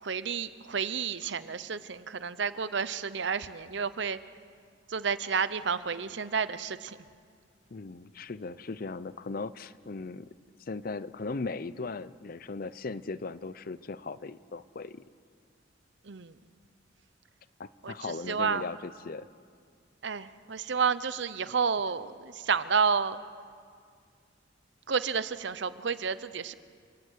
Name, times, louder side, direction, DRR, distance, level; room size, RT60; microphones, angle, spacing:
voice 1, 0.0-4.2 4.9-7.0 16.1-16.3 17.8-18.6 20.0-23.2 24.9-26.5, right 6 dB, 60° right, 14 dB, 0.7 m, -30 dB
voice 2, 7.7-10.3 10.7-15.0 17.6-19.3, left 3 dB, 45° left, 16 dB, 0.5 m, -38 dB
28.5 x 12.5 x 8.2 m, 2.1 s
head